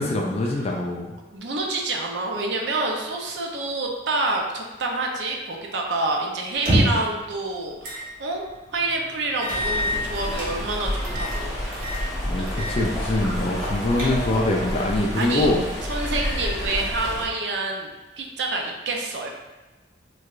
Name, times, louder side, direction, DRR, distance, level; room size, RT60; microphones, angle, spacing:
voice 1, 0.0-1.1 12.3-15.6, left 1 dB, 35° left, -1 dB, 0.3 m, -24 dB
voice 2, 1.3-8.4 8.7-11.6 15.1-15.5 15.9-17.9 18.2-19.3, right 2 dB, 70° right, 0 dB, 0.5 m, -27 dB
sound 1, 6.5-7.1 7.8-8.1 8.5-8.6 9.4-10.5 11.0-11.4 11.7-12.0 12.5-12.8 13.1-13.2 13.7-14.5, equal, 50° right, 0.9 m, -26 dB
sound 2, 8.6-14.9, equal, 80° left, 0.7 m, -38 dB
Stream, 9.5-17.2, left 1 dB, ahead, 0.9 m, -30 dB
4.6 x 2.2 x 2.4 m, 1.2 s
head